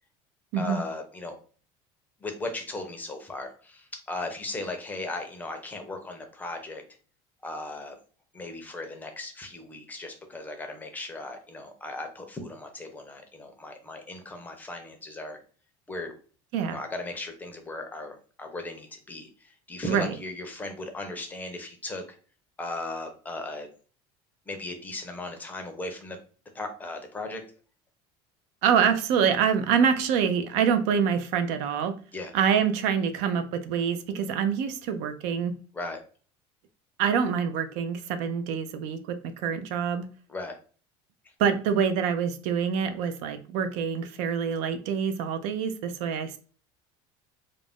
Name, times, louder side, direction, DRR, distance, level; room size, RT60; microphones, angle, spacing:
voice 1, 0.6-1.3 2.2-6.8 7.4-7.9 8.3-15.4 15.9-16.1 16.7-22.0 22.6-23.7 24.5-26.2 26.5-27.4 32.1-32.3 35.7-36.0 40.3-40.6, left 2 dB, 15° left, 0.5 m, -37 dB
voice 2, 28.6-31.9 32.3-35.5 37.0-40.1 41.4-46.4, right 7 dB, 70° right, 0.4 m, -26 dB
2.4 x 2.0 x 3.4 m
cardioid pair, 145°, 13 cm